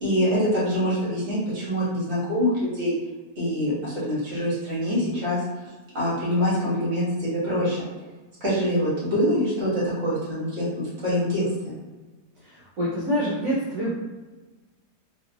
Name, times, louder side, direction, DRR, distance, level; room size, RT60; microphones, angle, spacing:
voice 1, 0.0-2.9 3.4-5.4 5.9-7.8 8.4-10.7 11.0-11.7, equal, 50° right, -9 dB, 2.1 m, -24 dB
voice 2, 12.4-13.9, equal, 65° right, -8 dB, 1.4 m, -26 dB
3.5 x 2.9 x 2.5 m, 1.2 s
omnidirectional pair, 1.8 m